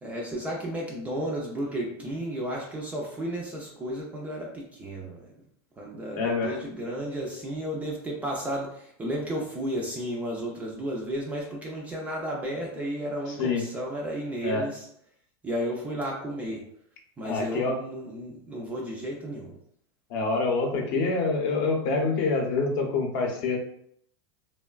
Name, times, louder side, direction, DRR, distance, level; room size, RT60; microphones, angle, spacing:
voice 1, 0.0-5.3 5.8-14.9 15.4-16.6 17.2-19.6, right 1 dB, 10° right, -3 dB, 0.3 m, -33 dB
voice 2, 6.1-6.6 13.4-13.6 14.4-14.7 17.2-17.8 20.1-23.6, left 3 dB, 45° left, 1 dB, 0.6 m, -26 dB
3.1 x 2.1 x 2.3 m, 0.69 s
supercardioid pair, 155°, 14 cm